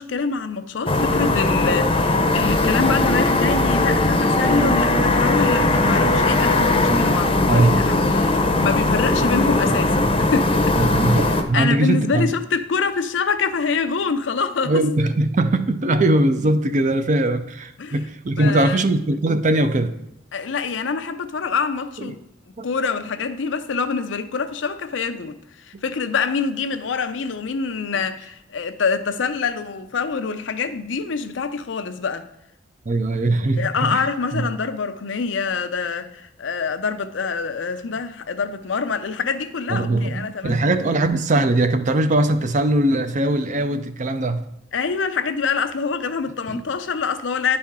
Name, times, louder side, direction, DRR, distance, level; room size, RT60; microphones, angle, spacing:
voice 1, 0.0-10.0 10.3-10.7 11.5-14.8 17.8-18.0 18.4-18.8 20.3-22.2 22.6-32.3 33.2-40.6 44.7-47.6, left 5 dB, 80° left, 0.5 m, -25 dB
sound 1, 0.9-11.4, left 2 dB, 30° left, 0.7 m, -19 dB
voice 2, 7.5-8.0 10.8-12.3 14.7-19.9 22.0-22.1 22.6-22.7 32.9-34.0 34.3-34.5 39.7-44.4 46.5-46.6, right 2 dB, 40° right, 0.5 m, -20 dB
10.5 x 4.3 x 3.6 m
head